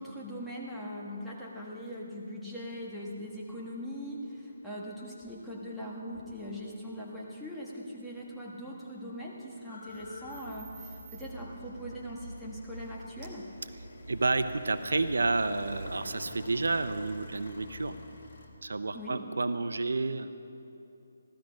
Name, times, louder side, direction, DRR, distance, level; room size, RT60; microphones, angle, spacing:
voice 1, 0.0-13.5 18.9-19.2, equal, ahead, -7 dB, 1.4 m, -41 dB
sound 1, 7.8-7.9 8.1-18.5, left 2 dB, 50° left, 1.9 m, -49 dB
sound 2, 9.9-16.0, right 1 dB, 25° right, 1.6 m, -46 dB
voice 2, 14.1-18.0 18.6-20.3, right 3 dB, 85° right, 11 dB, 0.7 m, -30 dB
15.5 x 13.0 x 5.1 m, 2.8 s
hypercardioid pair, 170°, 0 cm